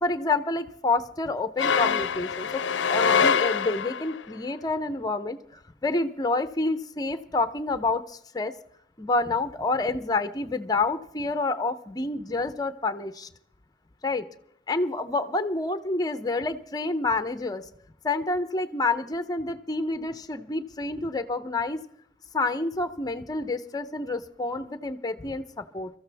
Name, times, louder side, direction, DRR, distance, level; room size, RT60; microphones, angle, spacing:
voice 1, 0.0-8.5 9.0-13.3 14.0-14.3 14.7-17.7 18.0-21.8 22.3-25.9, left 3 dB, 20° left, 11 dB, 0.7 m, -28 dB
sound 1, 1.6-4.2, left 6 dB, 85° left, 0.5 m, -24 dB
23.0 x 14.0 x 3.4 m, 0.70 s
head